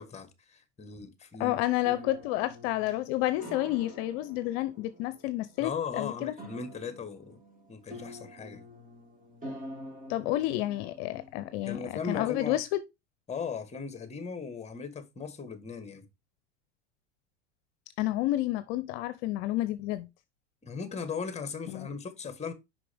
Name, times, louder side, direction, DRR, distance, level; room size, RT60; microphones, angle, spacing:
voice 1, 0.0-1.6 5.6-7.4 7.7-8.6 11.6-12.6 13.3-16.1 20.6-22.5, left 5 dB, 20° left, 1.4 m, -38 dB
voice 2, 1.4-5.7 6.0-6.3 10.1-11.8 12.1-12.8 18.0-20.1 21.7-21.9, left 15 dB, 60° left, 0.6 m, -30 dB
sound 1, 1.8-12.0, equal, 20° right, 3.1 m, -47 dB
5.9 x 5.3 x 3.5 m
hypercardioid pair, 95°, 37 cm